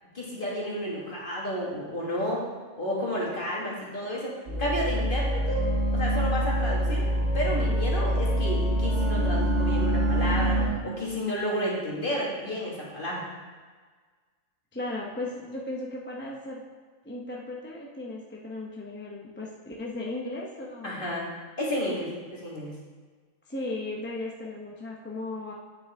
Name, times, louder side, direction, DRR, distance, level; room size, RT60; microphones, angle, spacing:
voice 1, 0.1-2.4 2.8-5.7 5.9-7.1 7.3-13.2 20.8-21.3 21.6-22.7, equal, 40° left, -5 dB, 1.9 m, -31 dB
sound 1, 4.5-10.7, right 1 dB, 60° right, 2.0 m, -25 dB
voice 2, 14.7-16.6 17.0-21.1 23.5-25.5, left 2 dB, 10° left, -3 dB, 0.6 m, -36 dB
8.6 x 6.2 x 3.5 m, 1.5 s
omnidirectional pair, 1.4 m